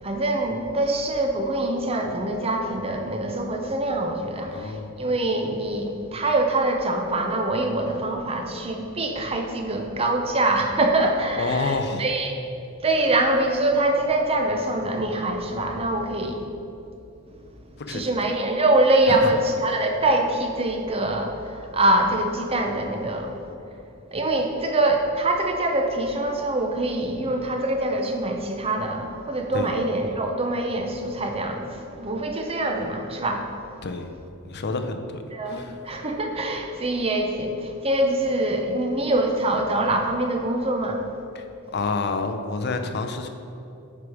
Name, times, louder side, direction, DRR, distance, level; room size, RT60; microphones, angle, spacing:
voice 1, 0.0-12.4 12.8-16.4 17.9-23.3 24.1-33.5 35.3-41.0, right 1 dB, 25° right, 3 dB, 0.7 m, -24 dB
voice 2, 4.4-4.9 11.4-12.0 17.9-18.1 29.5-29.7 33.8-34.1 34.4-35.8 41.3-41.4 41.7-43.3, left 3 dB, 50° left, 7 dB, 0.6 m, -28 dB
9.9 x 4.8 x 4.8 m, 2.7 s
head